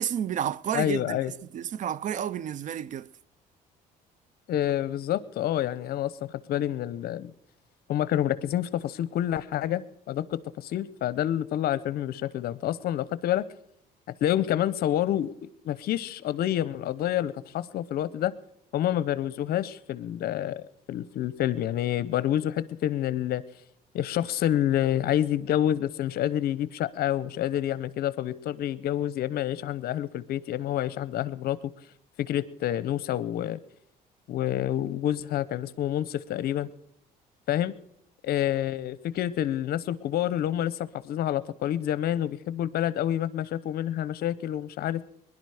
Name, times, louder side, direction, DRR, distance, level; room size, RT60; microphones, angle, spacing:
voice 1, 0.0-3.1, right 10 dB, 50° right, 0.4 m, -31 dB
voice 2, 0.7-1.3 4.5-7.3 7.9-13.4 14.2-18.3 18.7-23.4 23.9-31.6 32.3-33.6 34.3-36.7 37.5-37.7 38.2-45.0, left 11 dB, 65° left, 0.7 m, -28 dB
21.0 x 11.0 x 4.9 m
cardioid pair, 110°, 17 cm